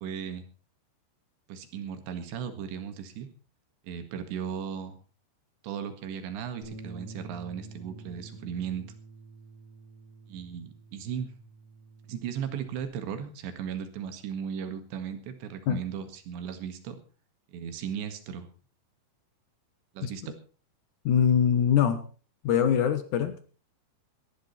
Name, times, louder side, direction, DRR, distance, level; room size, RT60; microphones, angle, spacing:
voice 1, 0.0-0.5 1.5-3.3 3.8-5.0 5.6-8.8 10.3-11.3 12.1-17.0 17.5-18.5 20.0-20.4, right 8 dB, 85° right, 8 dB, 4.1 m, -36 dB
Bass guitar, 6.6-12.9, right 3 dB, 45° left, 6.9 m, -48 dB
voice 2, 21.1-22.0 22.4-23.5, left 8 dB, 65° left, 10 dB, 2.0 m, -23 dB
19.0 x 13.0 x 4.3 m, 0.38 s
omnidirectional pair, 4.9 m